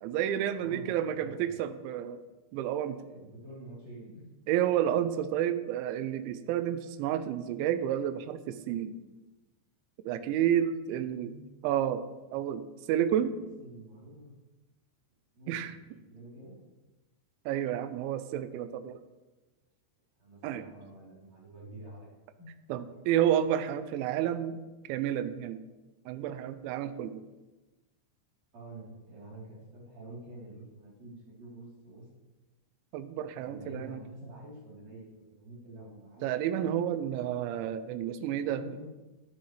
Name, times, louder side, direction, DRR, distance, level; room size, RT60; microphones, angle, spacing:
voice 1, 0.0-2.2 2.5-3.0 4.5-9.0 10.1-11.3 11.6-12.0 12.3-13.4 15.5-15.7 17.5-19.0 20.4-20.6 22.7-24.6 24.9-25.6 26.1-27.2 32.9-34.0 36.2-38.6, right 10 dB, 85° right, 11 dB, 3.0 m, -30 dB
voice 2, 0.5-1.5 3.0-4.3 11.0-11.4 13.2-14.3 15.3-15.8 16.1-16.6 20.2-22.1 22.4-22.5 28.5-32.1 33.4-36.4 38.4-38.9, right 1 dB, 40° right, -7 dB, 4.6 m, -47 dB
14.0 x 9.5 x 3.4 m, 1.1 s
omnidirectional pair, 5.2 m